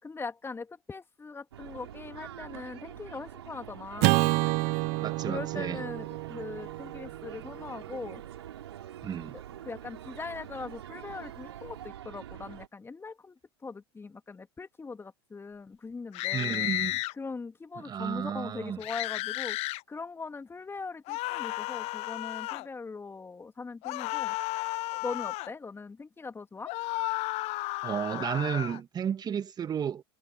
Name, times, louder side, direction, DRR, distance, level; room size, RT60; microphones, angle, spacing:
voice 1, 0.0-4.3 5.3-8.2 9.3-16.7 17.1-19.6 19.9-24.4 24.9-26.7, left 4 dB, 15° left, 2.8 m, -41 dB
sound 1, 1.5-12.7, right 11 dB, 75° right, 3.7 m, -45 dB
Acoustic guitar / Strum, 4.0-8.4, right 25 dB, 55° right, 1.4 m, -29 dB
voice 2, 5.0-5.8 9.0-9.4 16.3-17.0 17.8-18.8 27.8-30.0, right 8 dB, 30° right, 1.6 m, -32 dB
sound 2, 16.1-17.1 18.8-19.8 21.1-22.7 23.8-25.5 26.7-28.8, left 21 dB, 50° left, 1.0 m, -33 dB
hypercardioid pair, 80°, 14 cm